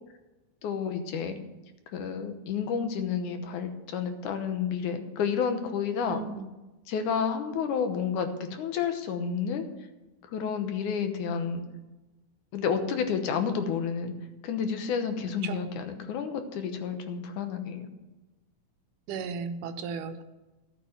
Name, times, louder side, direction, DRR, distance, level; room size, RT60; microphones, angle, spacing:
voice 1, 0.6-1.4 1.9-6.2 6.9-9.7 10.2-11.6 12.5-14.1 14.4-17.9, left 6 dB, 75° left, 7 dB, 2.4 m, -30 dB
voice 2, 6.1-6.5 15.4-15.6 19.1-20.2, right 5 dB, 80° right, 9 dB, 2.3 m, -35 dB
12.5 x 8.2 x 5.9 m, 1.1 s
omnidirectional pair, 3.7 m